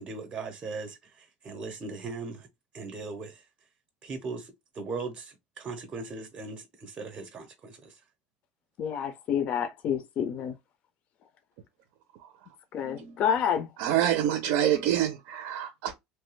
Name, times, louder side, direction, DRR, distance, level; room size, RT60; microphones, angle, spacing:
voice 1, 0.0-2.5 2.7-3.4 4.0-8.0, right 4 dB, 25° right, 0.6 m, -39 dB
voice 2, 8.8-10.5 12.7-13.7, left 8 dB, 35° left, 0.4 m, -28 dB
voice 3, 13.8-16.0, right 11 dB, 75° right, 0.6 m, -27 dB
3.1 x 2.3 x 3.1 m
cardioid pair, 170°, 3 cm